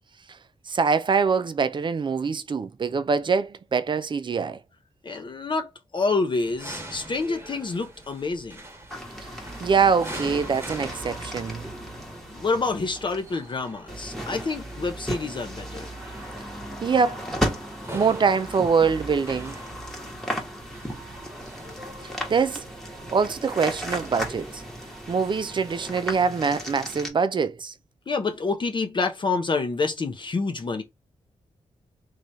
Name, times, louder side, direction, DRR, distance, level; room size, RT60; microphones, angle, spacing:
voice 1, 0.7-4.6 9.6-11.6 16.8-17.2 17.9-19.6 22.3-22.6 23.1-24.6 25.1-27.7, right 5 dB, 40° right, 0.4 m, -24 dB
voice 2, 5.0-8.6 12.3-15.9 28.1-30.8, left 4 dB, 40° left, 0.6 m, -27 dB
sound 1, 6.4-26.2, right 1 dB, 20° right, 1.1 m, -44 dB
sound 2, 8.9-27.1, equal, 5° left, 1.1 m, -35 dB
3.1 x 2.3 x 4.0 m
cardioid pair, 85°, 12 cm